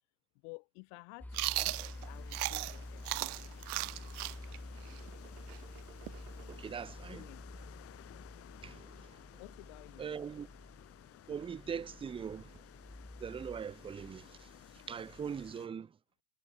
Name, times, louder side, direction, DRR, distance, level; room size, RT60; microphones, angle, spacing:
voice 1, 0.4-3.3 7.1-7.5 9.4-10.1, left 40 dB or more, 60° left, 2.5 m, -54 dB
sound 1, 1.2-15.5, left 1 dB, 5° left, 3.3 m, -50 dB
sound 2, 1.3-15.7, left 13 dB, 30° left, 1.5 m, -56 dB
Chewing mastication, 1.3-2.8 3.0-6.7, right 20 dB, 85° right, 0.7 m, -36 dB
voice 2, 6.5-7.3 8.6-9.2 10.0-10.5 11.3-12.6 13.2-14.5 14.9-15.9, right 7 dB, 15° right, 0.6 m, -41 dB
supercardioid pair, 130°, 44 cm